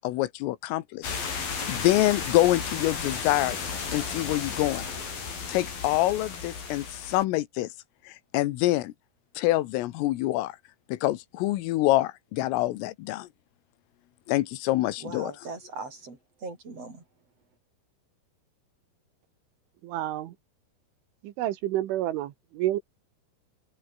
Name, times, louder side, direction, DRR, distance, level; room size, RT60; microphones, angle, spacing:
voice 1, 0.0-1.2 1.7-3.6 3.9-4.9 5.5-7.7 8.1-8.9 9.4-10.6 10.9-13.3 14.3-15.3, left 16 dB, 90° left, 3.8 m, -26 dB
sound 1, 1.0-7.2, left 5 dB, 45° left, 6.6 m, -34 dB
voice 2, 15.0-17.0, right 3 dB, 30° right, 6.4 m, -40 dB
voice 3, 19.8-20.4 21.2-22.8, right 13 dB, 75° right, 3.7 m, -29 dB
open air
omnidirectional pair, 5.9 m